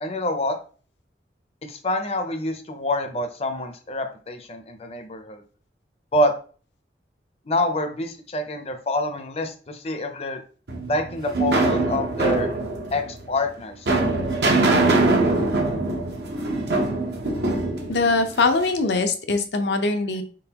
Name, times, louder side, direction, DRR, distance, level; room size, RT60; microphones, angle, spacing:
voice 1, 0.0-0.6 1.7-5.4 6.1-6.3 7.5-10.4 10.9-12.5 12.9-13.9, left 1 dB, 35° left, 6 dB, 0.6 m, -26 dB
sound 1, 10.7-18.8, right 2 dB, 70° right, 0.9 m, -23 dB
voice 2, 17.9-20.2, left 3 dB, 80° left, 7 dB, 0.7 m, -22 dB
4.2 x 3.8 x 2.9 m, 0.41 s
head